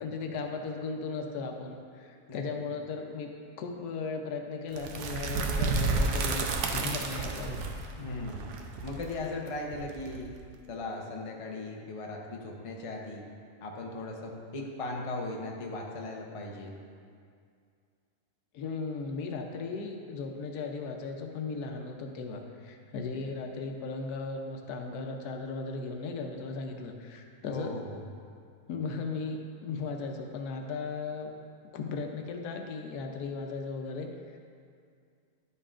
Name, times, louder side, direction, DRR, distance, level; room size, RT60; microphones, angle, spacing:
voice 1, 0.0-7.6 18.5-27.7 28.7-31.3 31.7-34.4, left 4 dB, 85° left, 3 dB, 1.2 m, -37 dB
sound 1, 4.7-10.6, right 3 dB, 85° right, 1.1 m, -31 dB
voice 2, 8.0-8.5 8.8-10.3 10.7-13.2 13.6-16.8 27.5-28.0, left 2 dB, 40° left, 0 dB, 0.5 m, -38 dB
10.5 x 5.4 x 2.4 m, 2.3 s
omnidirectional pair, 1.6 m